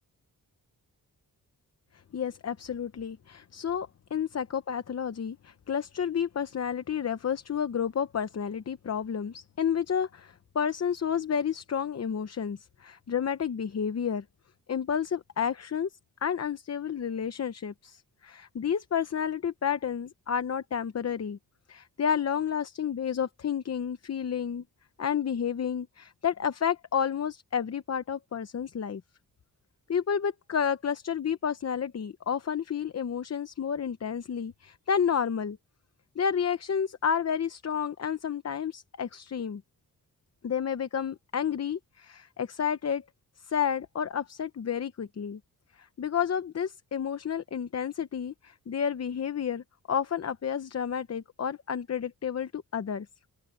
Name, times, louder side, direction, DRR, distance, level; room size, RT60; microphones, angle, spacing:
voice 1, 2.1-14.2 14.7-15.9 16.2-21.4 21.7-24.6 25.0-29.0 29.9-35.6 36.2-39.6 40.4-43.0 43.4-45.4 45.8-53.1, left 7 dB, 45° left, 0.8 m, -30 dB
open air
wide cardioid pair, 175°, 36 cm